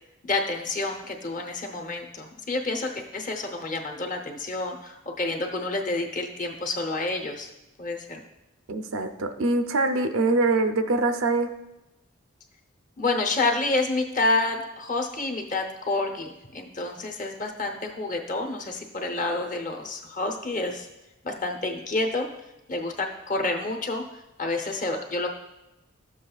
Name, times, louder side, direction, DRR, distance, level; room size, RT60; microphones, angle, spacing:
voice 1, 0.2-7.5 7.8-8.2 13.0-20.9 21.2-22.3 22.7-24.0 24.4-25.3, left 2 dB, 40° left, 3 dB, 0.8 m, -29 dB
voice 2, 8.7-11.5, right 2 dB, 85° right, 7 dB, 0.6 m, -24 dB
12.5 x 7.4 x 2.4 m, 0.94 s
head